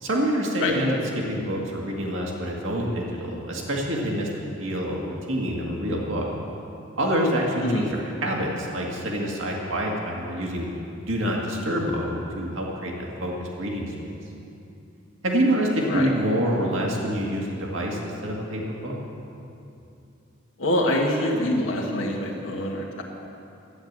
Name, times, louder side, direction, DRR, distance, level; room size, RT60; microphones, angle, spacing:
voice 1, 0.0-4.3 4.6-6.3 7.0-10.7 11.0-14.2 15.2-19.0, equal, 75° right, -1 dB, 2.0 m, -26 dB
voice 2, 20.6-23.0, left 1 dB, 80° left, -1 dB, 1.5 m, -25 dB
13.0 x 9.5 x 7.4 m, 2.7 s
head